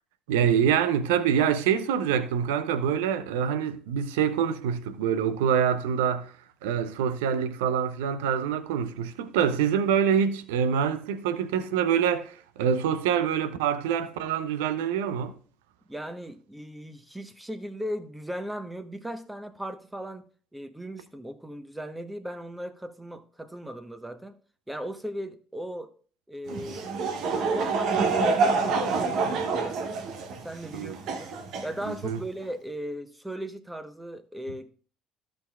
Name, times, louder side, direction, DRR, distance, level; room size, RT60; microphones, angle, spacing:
voice 1, 0.3-6.3 6.6-15.4 30.7-31.0 31.9-32.2, right 8 dB, 75° right, 0.7 m, -25 dB
voice 2, 15.9-20.2 20.5-24.4 24.7-25.9 26.3-26.9 27.2-30.0 30.4-31.3 31.6-34.7, equal, 10° right, 1.1 m, -37 dB
Laughter / Crowd, 26.5-32.2, right 4 dB, 60° right, 1.2 m, -27 dB
14.0 x 6.3 x 2.4 m
hypercardioid pair, 60°, 0 cm